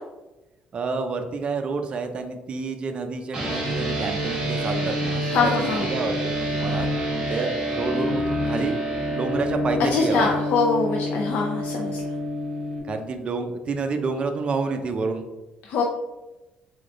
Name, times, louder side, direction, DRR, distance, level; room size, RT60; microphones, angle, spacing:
voice 1, 0.7-6.9 7.3-10.3 12.8-15.2, right 4 dB, 35° right, 6 dB, 0.5 m, -29 dB
sound 1, 3.3-12.8, equal, 20° right, 1.5 m, -27 dB
voice 2, 5.3-5.9 9.9-12.0 15.7-15.8, left 4 dB, 65° left, 0 dB, 0.5 m, -23 dB
3.8 x 3.4 x 3.8 m, 1.0 s
cardioid pair, 135°, 3 cm